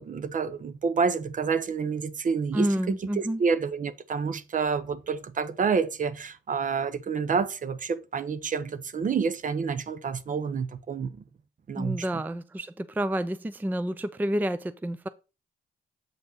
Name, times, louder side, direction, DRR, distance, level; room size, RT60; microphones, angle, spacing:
voice 1, 0.0-11.1 11.7-12.0, right 5 dB, 40° right, 0.8 m, -28 dB
voice 2, 2.5-3.4 11.8-15.1, right 1 dB, 10° right, 0.5 m, -29 dB
7.7 x 5.2 x 3.9 m
cardioid pair, 90°, 20 cm